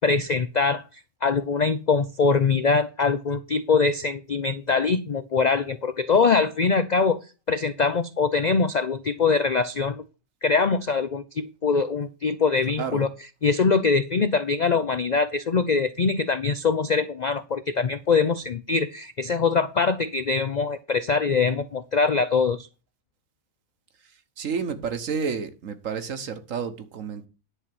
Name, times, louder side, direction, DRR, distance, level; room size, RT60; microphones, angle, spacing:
voice 1, 0.0-7.2 7.5-10.0 10.4-13.1 13.4-22.7, left 4 dB, 60° left, 0.4 m, -23 dB
voice 2, 24.4-27.3, right 6 dB, 70° right, 1.5 m, -30 dB
10.5 x 4.2 x 7.6 m
omnidirectional pair, 1.4 m